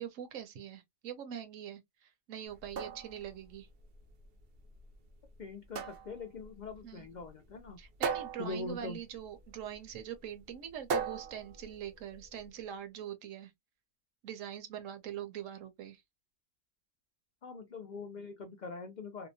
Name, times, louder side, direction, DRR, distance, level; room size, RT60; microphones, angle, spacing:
voice 1, 0.0-3.7 6.8-7.1 7.8-13.5 14.2-16.0, right 9 dB, 75° right, 1.0 m, -43 dB
sound 1, 2.5-12.5, right 5 dB, 60° right, 0.7 m, -40 dB
voice 2, 5.4-7.8 8.4-9.0 17.4-19.3, left 3 dB, 75° left, 0.4 m, -42 dB
2.8 x 2.1 x 2.6 m
omnidirectional pair, 1.4 m